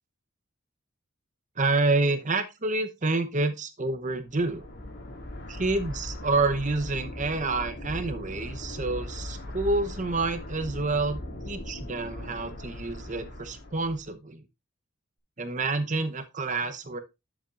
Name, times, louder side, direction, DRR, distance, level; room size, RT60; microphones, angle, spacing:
voice 1, 1.6-4.6 5.5-11.2 11.4-14.5 15.4-17.0, right 3 dB, 35° right, 10 dB, 0.9 m, -28 dB
sound 1, 4.3-14.1, left 1 dB, 55° left, 2.3 m, -39 dB
10.5 x 7.3 x 2.5 m, 0.23 s
head